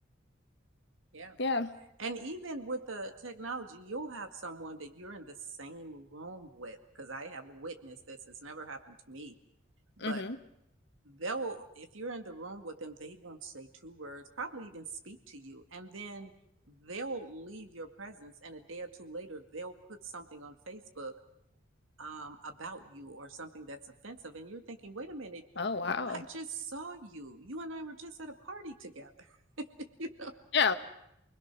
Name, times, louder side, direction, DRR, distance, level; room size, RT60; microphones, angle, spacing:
voice 1, 1.4-1.7 10.0-10.4 25.6-26.2 30.5-30.7, left 5 dB, 55° left, 9 dB, 1.3 m, -29 dB
voice 2, 2.0-9.4 10.0-10.2 11.0-16.3 16.7-21.2 22.0-25.4 26.1-30.3, right 2 dB, 80° right, 6 dB, 2.2 m, -42 dB
29.0 x 21.0 x 6.2 m, 0.78 s
head